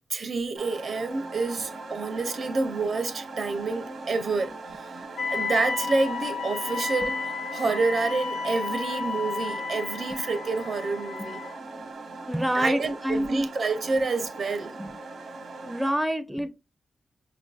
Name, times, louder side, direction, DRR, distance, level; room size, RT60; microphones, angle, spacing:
voice 1, 0.1-7.2 7.5-11.4 12.5-14.7, right 3 dB, 65° right, 0.5 m, -28 dB
sound 1, 0.6-15.9, right 3 dB, 85° right, 0.9 m, -40 dB
Wind instrument woodwind instrument, 5.2-11.6, left 4 dB, 85° left, 0.4 m, -32 dB
voice 2, 12.3-13.4 14.8-14.9 15.7-16.5, equal, 5° right, 0.4 m, -27 dB
5.0 x 2.5 x 2.3 m
cardioid pair, 85°, 0 cm